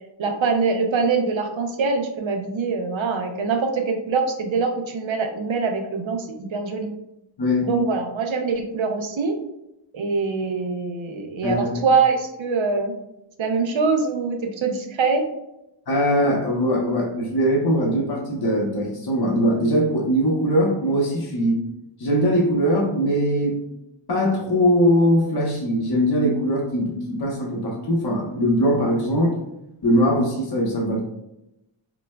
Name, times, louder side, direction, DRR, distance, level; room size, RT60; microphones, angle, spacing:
voice 1, 0.2-6.9 7.6-9.4 9.9-12.9 13.4-15.3, right 4 dB, 70° right, 4 dB, 0.8 m, -23 dB
voice 2, 7.4-7.7 11.4-11.8 15.9-21.6 22.0-23.6 24.1-29.4 29.8-31.0, equal, 50° left, -3 dB, 1.0 m, -21 dB
6.0 x 2.1 x 2.3 m, 0.87 s
cardioid pair, 55°, 48 cm